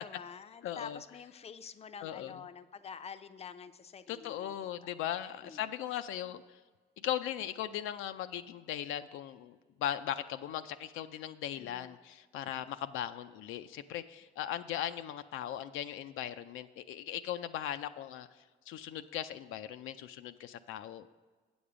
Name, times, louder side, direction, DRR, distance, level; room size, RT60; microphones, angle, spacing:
voice 1, 0.0-4.6 5.4-5.6 11.6-11.9, left 6 dB, 30° left, 10 dB, 0.5 m, -47 dB
voice 2, 0.6-1.0 2.0-2.4 4.1-6.6 7.0-18.3 18.7-21.1, left 11 dB, 85° left, 9 dB, 0.4 m, -38 dB
8.7 x 7.0 x 5.0 m, 1.4 s
cardioid pair, 90°, 20 cm